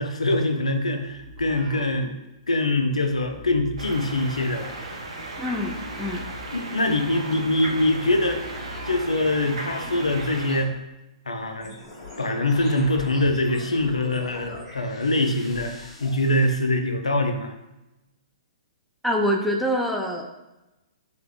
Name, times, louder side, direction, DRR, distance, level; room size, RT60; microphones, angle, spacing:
voice 1, 0.0-2.2 2.5-4.7 6.5-8.4 8.9-10.7 11.3-11.8 12.2-15.7 16.0-17.5, left 1 dB, 90° left, 5 dB, 0.3 m, -23 dB
sound 1, 1.0-2.6 2.8-10.3, left 2 dB, 20° left, 0.8 m, -42 dB
sound 2, 3.8-10.6, right 2 dB, 65° right, 0.4 m, -36 dB
voice 2, 5.4-6.3 19.0-20.3, equal, ahead, 0 dB, 0.3 m, -25 dB
sound 3, 11.6-16.6, left 2 dB, 45° left, 1.3 m, -41 dB
3.2 x 2.0 x 2.3 m, 0.97 s
figure-of-eight pair, 120°, 3 cm